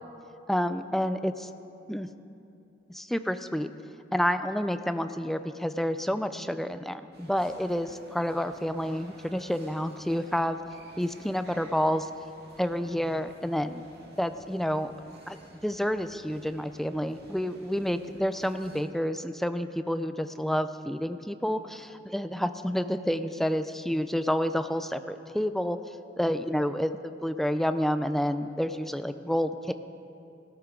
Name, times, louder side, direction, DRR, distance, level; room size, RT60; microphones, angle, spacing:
voice 1, 0.5-1.5 1.9-2.1 2.9-3.7 4.1-10.6 11.0-12.1 12.6-13.8 14.2-14.9 15.3-15.4 15.6-25.8 26.2-26.9 27.2-29.7, equal, ahead, 10 dB, 0.4 m, -29 dB
sound 1, 7.1-18.8, right 1 dB, 60° right, 2.2 m, -54 dB
18.5 x 13.0 x 3.7 m, 2.7 s
head